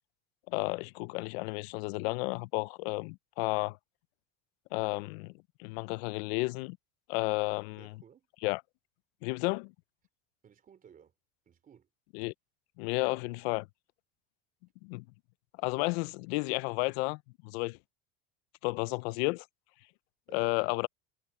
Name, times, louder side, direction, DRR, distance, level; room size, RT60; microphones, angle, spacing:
voice 1, 0.5-3.8 4.7-5.3 5.6-6.8 7.1-7.9 8.4-8.6 9.2-9.7 12.1-12.3 12.8-13.7 14.8-15.0 15.6-17.8 18.6-19.5 20.3-20.9, left 26 dB, 80° left, 0.5 m, -32 dB
voice 2, 7.8-8.3 10.4-11.1 11.4-11.9 20.3-20.6, right 7 dB, 25° right, 3.4 m, -57 dB
cardioid pair, 140°, 31 cm